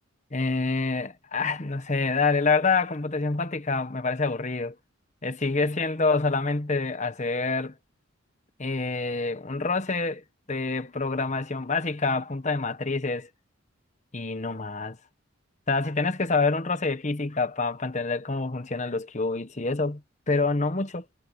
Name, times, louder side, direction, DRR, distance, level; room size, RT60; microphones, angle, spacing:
voice 1, 0.3-4.7 5.2-7.7 8.6-10.2 10.5-13.3 14.1-15.0 15.7-20.0 20.3-21.0, left 3 dB, 35° left, 1.2 m, -27 dB
head